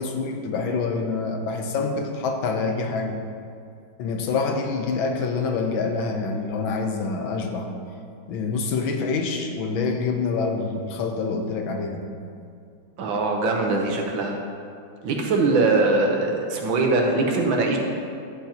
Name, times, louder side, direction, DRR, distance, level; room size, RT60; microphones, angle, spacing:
voice 1, 0.0-3.2 4.0-7.7 8.3-12.1, left 4 dB, 90° left, 4 dB, 1.6 m, -26 dB
voice 2, 13.0-14.4 15.0-17.8, right 3 dB, 85° right, 1 dB, 1.8 m, -22 dB
10.5 x 8.2 x 2.9 m, 2.4 s
omnidirectional pair, 2.1 m